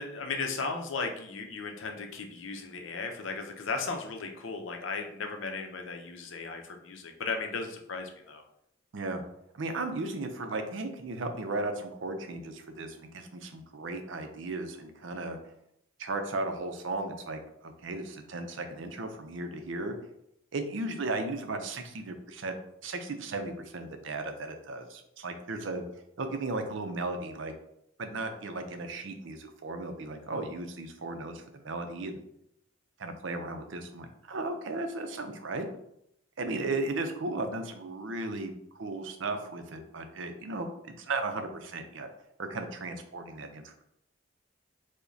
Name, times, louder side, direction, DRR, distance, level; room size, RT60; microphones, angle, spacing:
voice 1, 0.0-8.4, left 4 dB, 75° left, 4 dB, 0.6 m, -36 dB
voice 2, 9.5-15.4 16.0-20.0 20.5-22.6 22.8-25.8 26.2-27.5 28.0-32.2 33.0-35.7 36.4-40.7 41.0-42.1 42.4-43.8, right 2 dB, 70° right, 6 dB, 0.5 m, -35 dB
4.8 x 2.1 x 2.6 m, 0.76 s
head